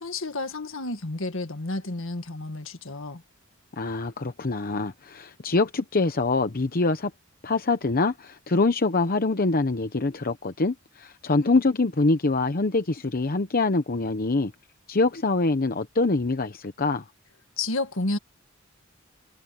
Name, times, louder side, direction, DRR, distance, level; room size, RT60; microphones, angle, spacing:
voice 1, 0.0-3.2 17.6-18.2, left 2 dB, 65° left, 1.8 m, -31 dB
voice 2, 3.8-7.1 7.4-14.5 14.9-17.0, left 3 dB, 45° left, 0.9 m, -24 dB
head